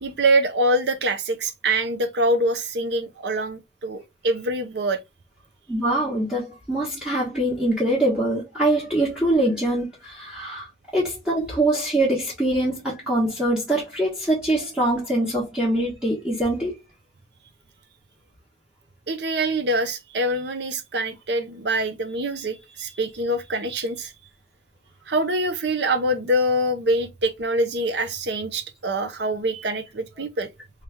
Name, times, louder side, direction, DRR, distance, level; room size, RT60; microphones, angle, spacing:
voice 1, 0.0-5.0 19.1-24.1 25.1-30.5, right 1 dB, 70° right, 0.7 m, -24 dB
voice 2, 5.7-16.8, right 1 dB, 5° right, 1.2 m, -23 dB
3.3 x 3.3 x 3.3 m
head